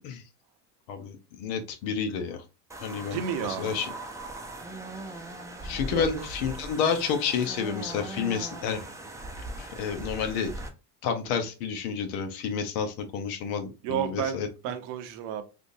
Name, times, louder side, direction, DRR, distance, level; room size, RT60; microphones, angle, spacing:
voice 1, 0.9-2.4 2.8-3.9 5.6-8.8 9.6-10.5 11.0-14.5, left 6 dB, 70° left, 1.0 m, -30 dB
sound 1, 2.7-10.7, right 1 dB, 5° right, 0.6 m, -39 dB
voice 2, 3.1-3.7 5.9-6.3 13.8-15.4, right 9 dB, 80° right, 0.9 m, -32 dB
3.6 x 2.6 x 2.6 m
supercardioid pair, 95°, 48 cm